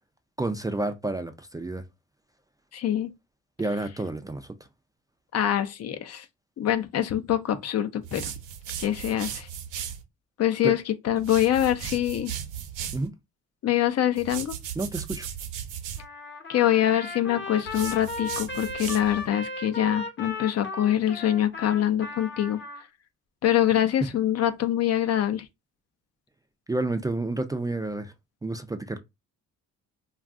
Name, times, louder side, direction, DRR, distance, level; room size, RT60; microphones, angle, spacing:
voice 1, 0.4-1.8 3.6-4.5 10.6-10.7 12.9-13.1 14.8-15.3 26.7-28.1 28.4-29.0, right 2 dB, 10° right, 0.3 m, -30 dB
voice 2, 2.7-3.1 5.3-6.2 6.6-8.3 8.8-9.5 10.4-12.3 13.6-14.6 16.5-22.6 23.4-25.5, left 11 dB, 55° left, 0.5 m, -24 dB
sound 1, 8.0-10.0 11.2-13.1 14.2-16.0 17.7-19.3, right 9 dB, 90° right, 0.8 m, -36 dB
Trumpet, 16.0-22.8, left 3 dB, 40° left, 0.9 m, -36 dB
2.3 x 2.3 x 3.5 m
cardioid pair, 90°, 30 cm